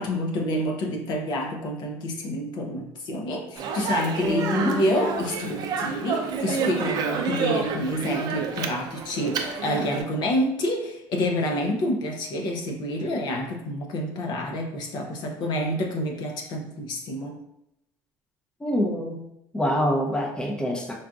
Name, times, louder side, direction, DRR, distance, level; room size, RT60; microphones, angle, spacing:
voice 1, 0.0-17.4, left 1 dB, 60° left, 1 dB, 0.6 m, -28 dB
Speech, 3.6-10.0, right 5 dB, 55° right, 0.4 m, -29 dB
sound 1, 4.2-7.5, equal, 10° right, 1.0 m, -36 dB
voice 2, 18.6-19.2 19.5-20.9, equal, 10° left, 0 dB, 0.6 m, -25 dB
3.9 x 2.4 x 2.3 m, 0.83 s
supercardioid pair, 95°, 8 cm